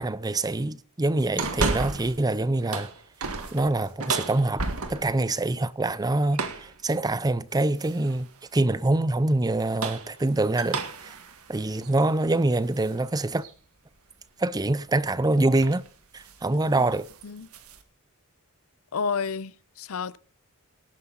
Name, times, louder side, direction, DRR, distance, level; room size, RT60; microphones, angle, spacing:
voice 1, 0.0-2.9 3.5-4.6 4.9-11.2 11.5-13.4 14.4-15.8 16.1-17.1, right 2 dB, 15° right, 0.5 m, -25 dB
sound 1, 1.4-2.2 2.6-5.2 6.3-6.7 7.8-8.2 9.5-13.0 13.4-13.5 15.1-15.3 15.6-15.9 16.2-16.4 16.8-17.8, right 4 dB, 90° right, 1.8 m, -33 dB
voice 2, 16.5-16.8 17.2-17.5 18.9-20.2, left 5 dB, 75° left, 0.6 m, -31 dB
18.0 x 9.6 x 4.0 m
head